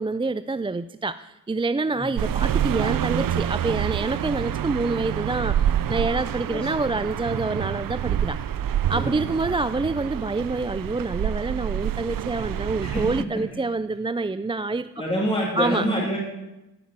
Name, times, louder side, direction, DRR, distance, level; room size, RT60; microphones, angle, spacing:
voice 1, 0.0-8.4 8.9-14.9 15.6-15.9, right 3 dB, 15° right, 13 dB, 0.4 m, -27 dB
sound 1, 2.2-13.2, right 10 dB, 75° right, 0.6 m, -27 dB
voice 2, 8.9-9.3 12.8-13.0 15.0-16.2, equal, 15° left, -4 dB, 3.2 m, -26 dB
13.0 x 5.9 x 8.7 m, 0.97 s
cardioid pair, 65°, 34 cm